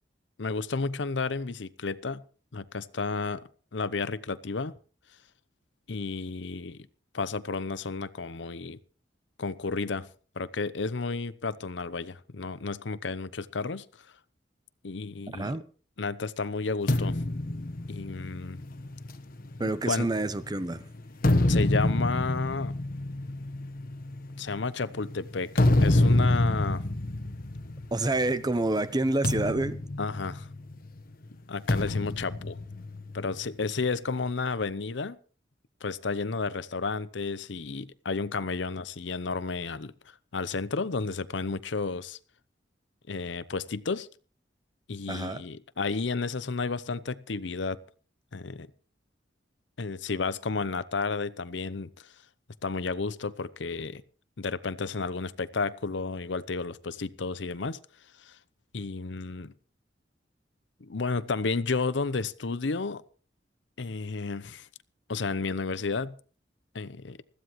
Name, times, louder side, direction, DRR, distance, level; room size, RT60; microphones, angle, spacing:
voice 1, 0.4-2.2 2.5-4.8 5.9-6.9 7.1-8.8 9.4-10.1 10.4-13.9 14.8-15.6 16.0-17.2 17.9-18.6 19.6-20.1 21.5-22.7 24.4-26.8 30.0-30.5 31.5-32.6 33.1-35.2 35.8-42.2 43.1-44.1 44.9-47.8 48.3-48.7 49.8-52.1 52.6-54.0 54.4-57.8 58.2-58.4 58.7-59.5 60.8-63.0 63.8-64.7 65.1-66.2 66.7-67.2, left 4 dB, 85° left, 0.7 m, -32 dB
voice 2, 15.3-15.6 19.6-20.8 27.9-29.8 45.1-45.4, right 2 dB, 25° right, 0.8 m, -28 dB
sound 1, 16.9-20.5 21.0-28.4 28.7-28.9 29.2-30.9 31.7-33.4, left 1 dB, 50° left, 1.2 m, -27 dB
20.5 x 15.0 x 3.1 m
head